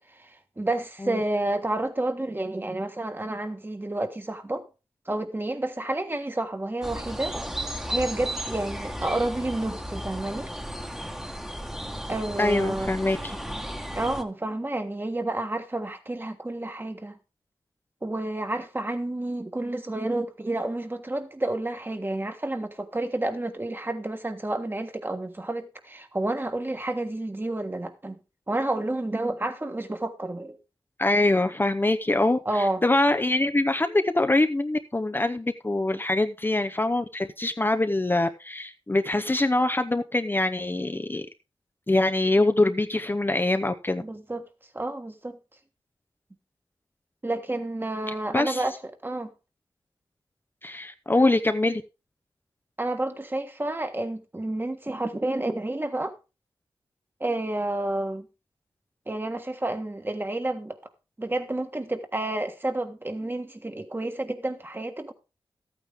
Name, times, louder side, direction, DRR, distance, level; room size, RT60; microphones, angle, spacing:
voice 1, 0.6-4.6 5.1-7.4 7.9-10.5 12.1-12.9 13.9-17.2 18.0-28.2 28.5-30.6 32.4-32.8 44.0-44.4 44.7-45.4 47.2-48.7 49.0-49.3 52.8-56.1 57.2-58.3 59.1-60.8 61.2-65.1, right 2 dB, 25° right, 1.6 m, -30 dB
sound 1, 6.8-14.2, equal, 5° right, 1.5 m, -34 dB
voice 2, 12.4-13.4 31.0-41.2 41.9-44.0 48.3-48.6 50.6-51.8, left 2 dB, 25° left, 0.8 m, -24 dB
13.0 x 9.0 x 3.6 m
wide cardioid pair, 75°, 9 cm